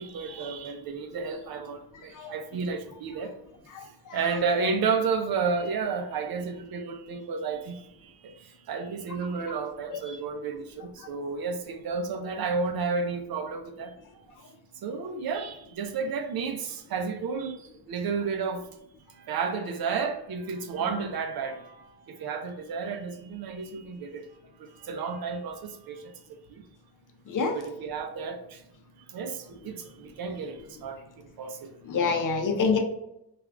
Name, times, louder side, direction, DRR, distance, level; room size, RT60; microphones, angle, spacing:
voice 1, 0.0-3.3 4.1-7.8 8.2-13.9 14.8-17.6 17.9-18.6 19.2-24.2 24.6-26.1 26.5-26.6 27.5-28.6 29.1-31.0 31.4-31.7, right 5 dB, 55° right, 0.6 m, -32 dB
voice 2, 3.7-4.4 9.9-10.0 11.0-11.1 27.3-27.6 31.8-32.8, left 5 dB, 45° left, 0.7 m, -28 dB
3.4 x 2.5 x 3.4 m
cardioid pair, 130°, 44 cm